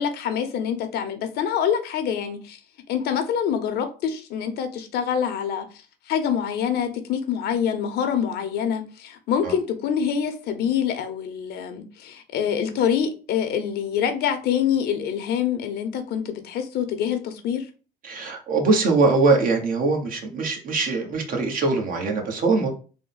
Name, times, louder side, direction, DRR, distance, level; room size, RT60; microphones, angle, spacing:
voice 1, 0.0-2.6 2.9-5.6 6.1-17.7, left 8 dB, 75° left, 0.8 m, -25 dB
voice 2, 18.0-22.7, right 3 dB, 55° right, 1.2 m, -22 dB
3.6 x 2.2 x 3.9 m
cardioid pair, 110°, 17 cm